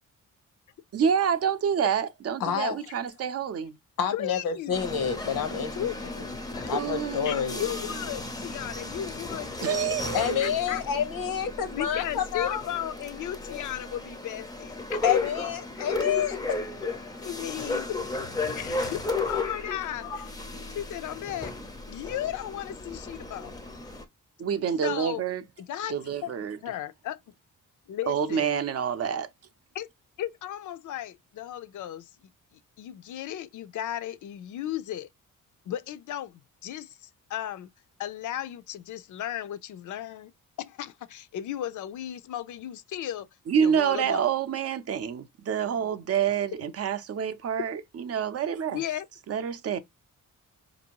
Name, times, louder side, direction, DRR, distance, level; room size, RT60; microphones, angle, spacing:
voice 1, 0.9-3.8 6.7-7.6 9.6-10.5 24.4-25.4 25.9-26.6 28.1-29.3 43.5-48.8 49.3-49.8, right 8 dB, 45° right, 0.5 m, -28 dB
voice 2, 2.4-2.8 4.0-5.8 6.7-7.6 10.1-12.6 13.5-13.6 15.0-16.6, left 8 dB, 90° left, 0.9 m, -28 dB
voice 3, 4.1-4.7 5.8-6.0 6.6-10.0 10.4-10.8 11.8-15.3 15.8-15.9 16.8-16.9 17.2-18.2 18.5-20.4 20.7-21.5 21.9-23.5 24.8-25.2 25.6-26.3 26.6-27.2 27.9-28.6 29.7-29.9 30.2-32.1 32.8-35.1 35.7-37.7 38.0-40.3 40.6-43.3 43.6-44.3 45.9-46.0 48.7-49.1, left 11 dB, 65° left, 0.5 m, -35 dB
sound 1, 4.7-24.0, left 3 dB, 10° left, 0.5 m, -35 dB
5.1 x 2.6 x 2.9 m
wide cardioid pair, 175°, 33 cm